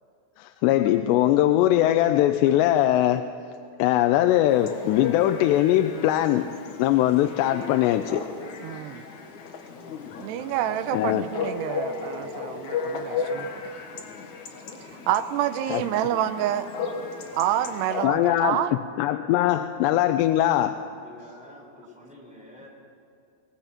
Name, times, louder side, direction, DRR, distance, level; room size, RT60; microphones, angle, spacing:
voice 1, 0.4-3.3 3.8-6.5 6.8-8.2 10.9-11.2 15.7-15.8 18.0-18.6 19.0-20.7, left 13 dB, 90° left, 7 dB, 2.8 m, -21 dB
Chatter / Bark / Livestock farm animals working animals, 4.5-18.1, left 5 dB, 55° left, 2.5 m, -35 dB
voice 2, 8.6-9.0 10.2-13.5 15.1-16.7 17.4-18.8, right 11 dB, 85° right, 11 dB, 2.8 m, -28 dB
voice 3, 21.0-22.7, equal, ahead, -2 dB, 4.3 m, -48 dB
23.5 x 19.0 x 5.9 m, 2.5 s
omnidirectional pair, 4.9 m